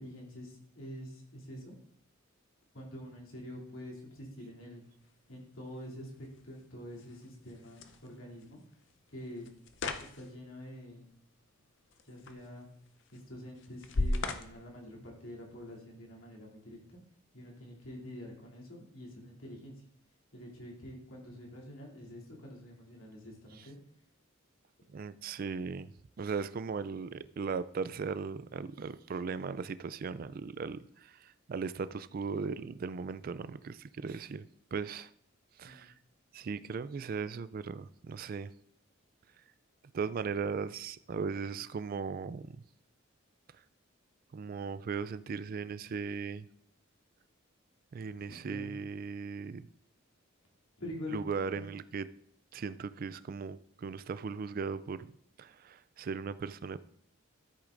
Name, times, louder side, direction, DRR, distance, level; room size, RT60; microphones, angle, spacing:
voice 1, 0.0-1.8 2.7-4.8 5.3-8.6 9.1-9.5 10.0-11.0 12.0-12.7 13.1-17.0 17.3-19.8 20.3-23.8 35.6-35.9 48.4-48.7 50.8-51.2 51.5-51.6, left 1 dB, 85° left, 2.8 m, -46 dB
sound 1, 4.8-15.8, left 2 dB, 60° left, 0.7 m, -41 dB
voice 2, 24.9-25.9 26.2-35.1 35.6-35.9 36.3-38.5 39.9-42.6 44.3-46.5 47.9-49.7 51.1-52.1 52.5-55.1 55.4-56.8, right 5 dB, 45° right, 0.3 m, -38 dB
13.5 x 8.4 x 2.5 m
head